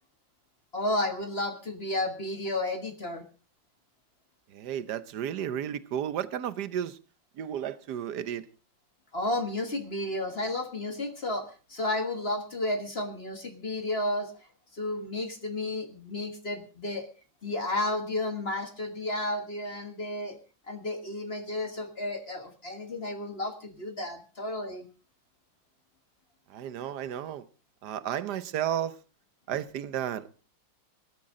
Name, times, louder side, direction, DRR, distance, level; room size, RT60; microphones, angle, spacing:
voice 1, 0.7-3.3 9.1-14.3 14.7-17.1 17.4-20.4 20.7-24.9, left 1 dB, 35° left, 1.6 m, -32 dB
voice 2, 4.5-7.0 7.4-8.4 26.5-27.4 27.8-28.9 29.5-30.3, right 10 dB, 65° right, 1.3 m, -33 dB
18.0 x 13.0 x 3.7 m
omnidirectional pair, 2.1 m